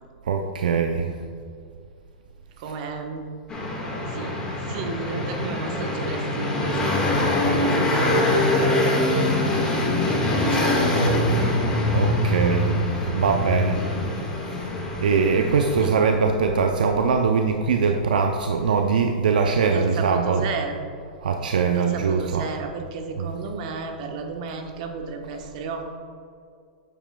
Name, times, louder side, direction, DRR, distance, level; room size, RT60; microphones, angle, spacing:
voice 1, 0.2-1.2 11.9-12.8 13.1-13.9 14.5-14.7 15.0-20.5 21.2-22.5 23.2-23.3, right 5 dB, 85° right, 4 dB, 0.5 m, -22 dB
voice 2, 2.6-3.3 4.1-9.3 10.1-11.2 15.8-15.9 19.7-20.8 21.7-25.9, right 4 dB, 55° right, 3 dB, 1.1 m, -33 dB
sound 1, 3.5-15.9, left 1 dB, 20° left, 1.6 m, -23 dB
9.0 x 7.2 x 2.3 m, 2.3 s
hypercardioid pair, 125°, 4 cm